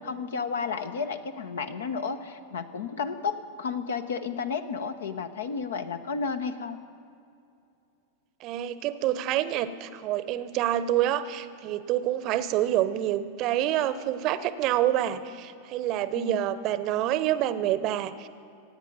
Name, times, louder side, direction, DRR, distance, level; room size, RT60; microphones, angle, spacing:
voice 1, 0.0-6.8 16.1-16.4, left 5 dB, 65° left, 10 dB, 0.8 m, -32 dB
voice 2, 8.4-18.3, right 12 dB, 40° right, 14 dB, 0.7 m, -27 dB
25.5 x 9.4 x 5.3 m, 2.5 s
figure-of-eight pair, 90°, 0 cm